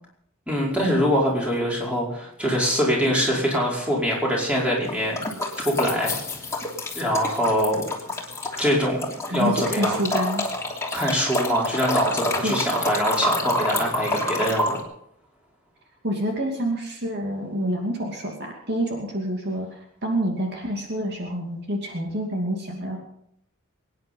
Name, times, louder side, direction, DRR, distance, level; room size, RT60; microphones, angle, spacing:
voice 1, 0.5-5.2 5.6-6.1 7.0-7.8 8.6-10.0 10.9-14.8, equal, 5° right, -3 dB, 5.1 m, -23 dB
sound 1, 4.8-8.8 9.0-14.8, left 1 dB, 15° left, 3.0 m, -28 dB
voice 2, 9.3-10.4 12.4-12.6 16.0-23.0, equal, 50° right, 1 dB, 2.7 m, -27 dB
23.5 x 10.0 x 5.6 m, 0.72 s
head